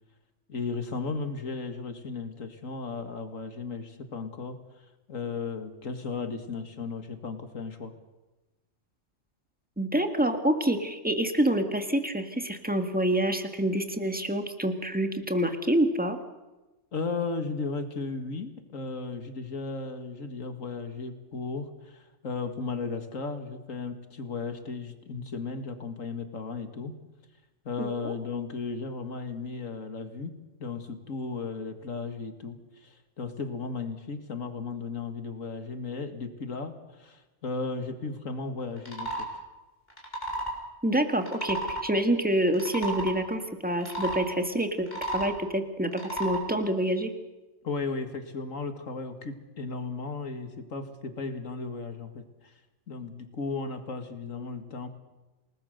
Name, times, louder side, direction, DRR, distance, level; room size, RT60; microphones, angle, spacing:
voice 1, 0.5-4.6 5.1-7.9 16.9-26.9 27.6-39.3 47.6-52.5 52.9-54.9, left 4 dB, 85° left, 7 dB, 2.3 m, -35 dB
voice 2, 9.8-16.2 27.8-28.1 40.8-44.9 45.1-47.1, right 1 dB, 5° right, 6 dB, 1.8 m, -27 dB
bangkok frog, 38.8-39.3 39.9-40.6 41.2-41.8 42.5-43.1 43.8-44.2 44.8-45.4 45.9-46.4, right 2 dB, 35° left, 5.0 m, -33 dB
28.0 x 19.0 x 6.7 m, 1.1 s
omnidirectional pair, 1.3 m